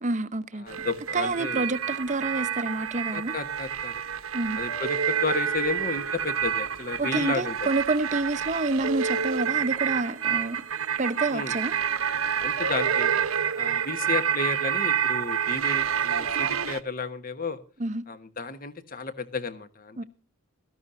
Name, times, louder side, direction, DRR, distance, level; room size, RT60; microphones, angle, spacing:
voice 1, 0.0-0.9 1.1-3.3 4.3-4.6 7.0-10.6 11.0-11.7 17.8-18.0 20.0-20.1, right 2 dB, 35° right, 0.7 m, -28 dB
voice 2, 0.6-1.7 3.1-4.0 4.6-7.7 11.3-11.5 12.4-13.1 13.5-17.6 18.1-20.0, left 4 dB, 40° left, 1.2 m, -33 dB
sound 1, 0.7-16.8, right 8 dB, 70° right, 1.0 m, -28 dB
17.0 x 14.0 x 2.6 m
head